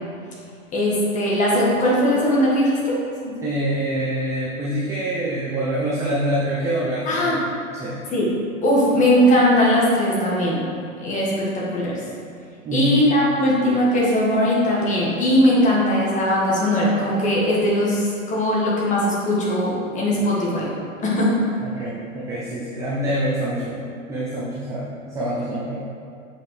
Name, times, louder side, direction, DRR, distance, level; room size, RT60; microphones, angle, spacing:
voice 1, 0.7-3.0 3.2-3.4 7.1-7.4 8.1-8.3 8.6-10.6 11.0-12.0 12.7-20.7 21.0-21.4, equal, 20° left, -5 dB, 1.5 m, -19 dB
voice 2, 3.4-7.5 7.8-8.0 12.6-13.0 21.6-23.8 24.1-25.9, right 1 dB, 10° right, -8 dB, 0.4 m, -25 dB
7.4 x 4.9 x 3.2 m, 2.3 s
hypercardioid pair, 125°, 41 cm